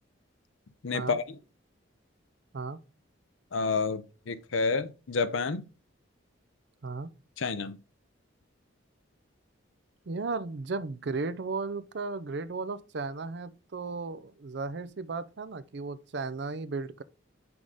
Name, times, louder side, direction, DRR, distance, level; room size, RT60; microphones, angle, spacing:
voice 1, 0.8-1.2 3.5-5.6 7.4-7.8, left 4 dB, 75° left, 0.6 m, -29 dB
voice 2, 10.1-17.0, right 3 dB, 60° right, 0.5 m, -35 dB
6.1 x 3.7 x 4.8 m
head